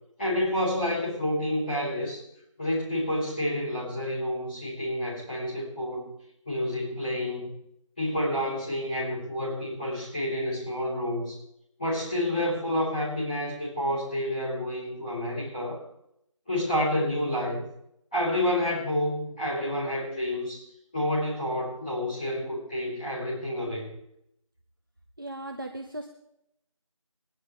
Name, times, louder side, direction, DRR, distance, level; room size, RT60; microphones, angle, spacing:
voice 1, 0.2-2.2 2.6-6.1 6.5-7.5 8.0-11.4 11.8-15.8 16.5-17.6 18.1-20.6 20.9-23.9, left 1 dB, 15° left, -13 dB, 5.5 m, -29 dB
voice 2, 25.2-26.1, right 1 dB, 40° right, 4 dB, 0.9 m, -37 dB
21.5 x 11.5 x 3.4 m, 0.77 s
figure-of-eight pair, 175°, 18 cm